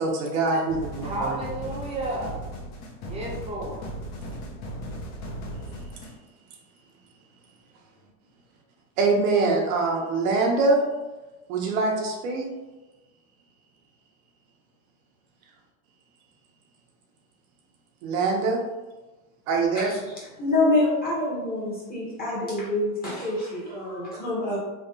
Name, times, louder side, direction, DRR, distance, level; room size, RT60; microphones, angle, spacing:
voice 1, 0.0-1.4 9.0-10.8 11.5-12.5 18.0-18.6 19.5-19.9, right 3 dB, 90° right, 0 dB, 1.0 m, -23 dB
sound 1, 0.7-6.1, equal, 45° left, 0.7 m, -37 dB
voice 2, 1.0-2.3 3.0-3.8, right 1 dB, 15° right, -2 dB, 0.7 m, -32 dB
voice 3, 20.4-24.6, left 2 dB, 20° left, -6 dB, 1.0 m, -26 dB
3.3 x 2.9 x 2.7 m, 1.1 s
supercardioid pair, 155°, 40 cm